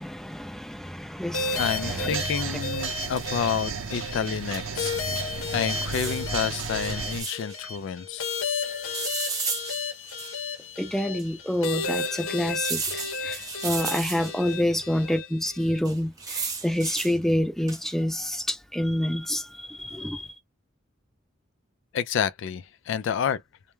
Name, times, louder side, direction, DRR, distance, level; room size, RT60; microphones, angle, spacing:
voice 1, 0.0-2.2 2.5-2.6 10.8-20.3, left 1 dB, ahead, 0.5 m, -28 dB
sound 1, 1.3-15.8, left 4 dB, 85° left, 0.8 m, -33 dB
sound 2, 1.5-7.2, right 5 dB, 80° right, 0.5 m, -34 dB
voice 2, 1.6-4.9 5.5-8.3 21.9-23.4, left 7 dB, 65° left, 0.3 m, -29 dB
sound 3, 2.9-3.5 4.5-4.6 4.9-5.0 5.8-7.6 8.9-10.6 11.2-11.3 12.6-14.6 15.8-17.2 17.7-18.0, right 4 dB, 20° right, 0.8 m, -34 dB
2.2 x 2.1 x 3.0 m
head